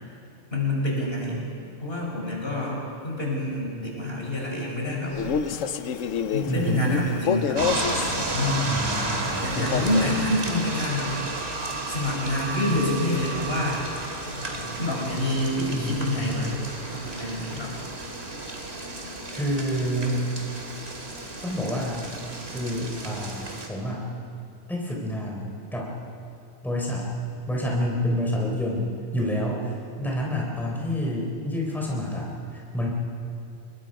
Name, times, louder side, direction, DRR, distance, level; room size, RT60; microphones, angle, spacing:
voice 1, 0.5-1.4 1.8-5.2 6.3-7.7 8.3-8.7 9.4-11.2 11.9-13.8 14.3-16.6 16.9-17.7, left 1 dB, 50° left, -2 dB, 5.3 m, -27 dB
Male speech man speaking, 5.1-8.2 9.6-10.2, left 7 dB, 85° left, 1.2 m, -28 dB
voice 2, 6.5-6.8 8.6-10.0 15.7-16.5 19.3-20.2 21.4-22.1 22.5-23.4 23.7-24.1 24.7-26.0 26.6-27.1 27.5-32.9, equal, ahead, -3 dB, 3.5 m, -29 dB
sound 1, 7.6-23.7, right 2 dB, 55° right, 2.8 m, -32 dB
26.0 x 22.0 x 5.4 m, 2.5 s
omnidirectional pair, 1.3 m